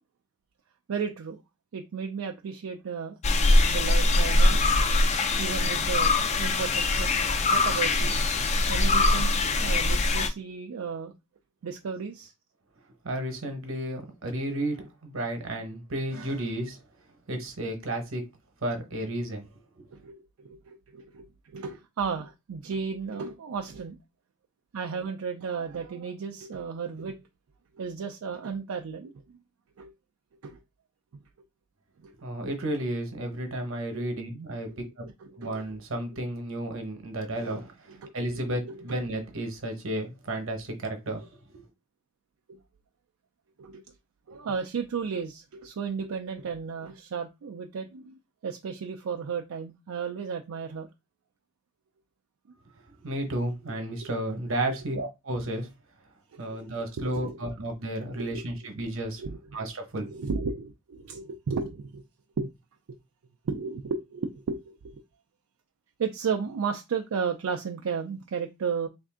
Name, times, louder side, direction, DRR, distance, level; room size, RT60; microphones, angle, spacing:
voice 1, 0.9-1.4 1.7-3.2 3.7-4.6 5.4-7.2 7.5-8.2 8.7-11.1 11.6-12.3 19.9-24.0 24.7-27.2 27.7-29.2 29.8-29.9 30.4-30.6 31.1-31.2 32.0-32.1 33.9-34.1 34.7-34.8 35.0-35.6 37.5-37.6 37.9-39.1 42.5-42.6 43.6-43.9 44.3-50.9 54.0-54.2 54.7-55.0 56.3-56.6 57.0-57.4 58.1-58.5 59.2-59.4 60.0-62.0 62.4-62.5 62.9-63.0 63.4-65.0 66.0-68.9, right 5 dB, 80° right, 0.4 m, -34 dB
sound 1, 3.2-10.3, left 2 dB, 30° left, 0.3 m, -23 dB
voice 2, 13.0-16.9 17.3-18.3 18.6-19.5 19.8-19.9 32.2-35.1 35.4-41.6 53.0-55.7 56.4-59.2 59.5-60.1, right 1 dB, 65° right, 1.0 m, -32 dB
3.3 x 2.6 x 3.6 m
head